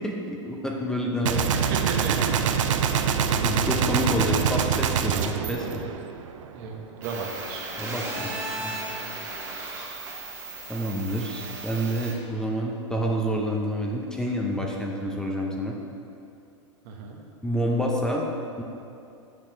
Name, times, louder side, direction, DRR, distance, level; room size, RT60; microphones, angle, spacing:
voice 1, 0.0-1.6 3.3-5.8 7.8-8.3 8.6-8.7 10.7-15.8 17.4-18.3 18.6-18.7, equal, 5° left, -2 dB, 0.7 m, -28 dB
Gunshot gunfire, 1.2-6.5, right 7 dB, 80° right, 0.5 m, -24 dB
voice 2, 1.5-2.4 6.5-7.8 9.0-9.2 16.8-17.2, right 4 dB, 55° right, 1 dB, 1.3 m, -34 dB
sound 1, 7.0-12.1, right 2 dB, 20° right, 1.8 m, -35 dB
6.7 x 5.9 x 5.6 m, 2.7 s
hypercardioid pair, 115°, 16 cm